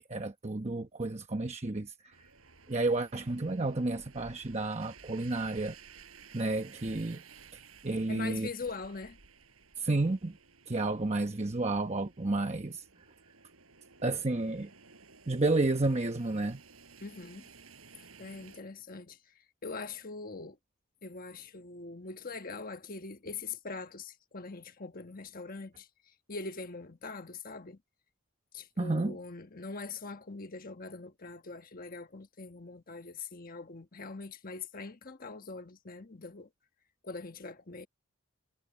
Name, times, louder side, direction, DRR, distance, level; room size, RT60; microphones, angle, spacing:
voice 1, 0.0-2.3 2.7-5.8 6.3-7.2 7.5-8.5 9.8-10.4 10.7-12.8 14.0-14.7 15.3-16.6 28.8-29.2, right 2 dB, 30° right, 1.0 m, -31 dB
sound 1, 2.1-18.6, right 5 dB, 80° right, 4.9 m, -56 dB
voice 2, 8.1-9.2 17.0-17.5 18.2-19.2 19.6-20.6 21.0-25.9 26.3-27.8 28.5-36.5 37.0-37.9, left 4 dB, 40° left, 1.3 m, -42 dB
head